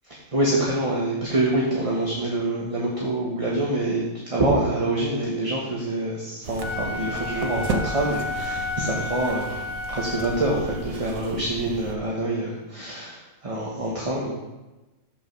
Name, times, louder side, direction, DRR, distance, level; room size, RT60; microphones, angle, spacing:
voice 1, 0.1-14.3, right 1 dB, 25° right, -4 dB, 1.1 m, -26 dB
sound 1, 6.4-12.0, right 3 dB, 80° right, 1.2 m, -34 dB
Wind instrument woodwind instrument, 6.6-10.9, left 3 dB, 80° left, 1.2 m, -32 dB
5.9 x 4.9 x 6.3 m, 1.1 s
omnidirectional pair, 1.4 m